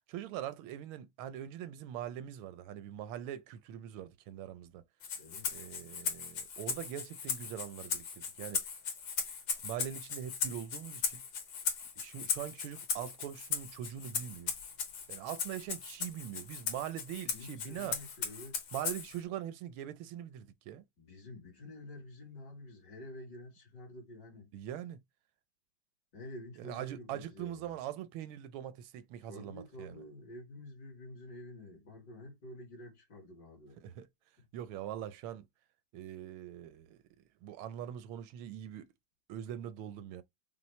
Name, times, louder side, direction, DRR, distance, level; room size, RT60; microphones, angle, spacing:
voice 1, 0.1-4.8 5.5-8.6 9.6-11.2 12.0-14.5 15.1-18.0 18.7-20.8 24.5-25.0 26.6-30.0 33.8-34.1 34.5-35.5 35.9-37.0 37.4-38.9 39.3-40.2, right 11 dB, 85° right, 1.4 m, -42 dB
Rattle (instrument), 5.0-19.2, left 6 dB, 85° left, 2.0 m, -38 dB
voice 2, 5.2-5.6 17.3-18.6 21.0-24.5 26.1-27.8 29.3-33.8, left 1 dB, 55° left, 2.2 m, -49 dB
5.8 x 2.0 x 3.1 m
omnidirectional pair, 2.2 m